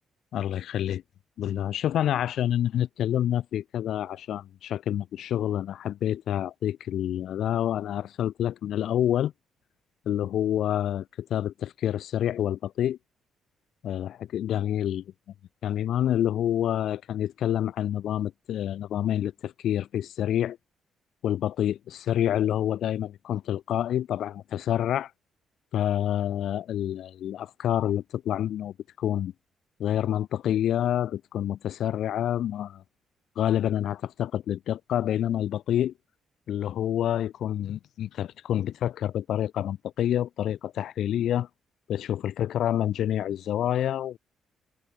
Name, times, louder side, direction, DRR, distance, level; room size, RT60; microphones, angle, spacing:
voice 1, 0.3-1.0 1.4-9.3 10.1-13.0 13.8-15.0 15.6-20.6 21.2-25.1 25.7-29.3 29.8-32.8 33.4-35.9 36.5-41.5 41.9-44.2, left 11 dB, 70° left, 4.4 m, -28 dB
cardioid pair, 90°, 0 cm